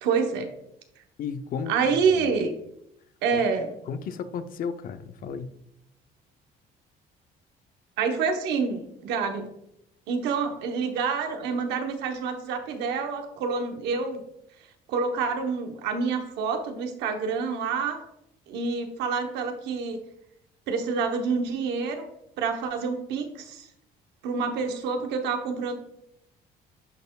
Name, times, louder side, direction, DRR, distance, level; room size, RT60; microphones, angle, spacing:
voice 1, 0.0-0.5 1.7-2.5 3.2-3.7 8.0-9.5 10.1-14.2 14.9-18.1 18.5-20.0 20.7-22.1 22.4-23.7 24.2-25.7, right 5 dB, 85° right, 5 dB, 0.9 m, -27 dB
voice 2, 1.2-2.4 3.3-3.4 3.9-5.6, left 6 dB, 55° left, 11 dB, 0.6 m, -34 dB
10.5 x 4.2 x 2.3 m, 0.79 s
cardioid pair, 110°, 17 cm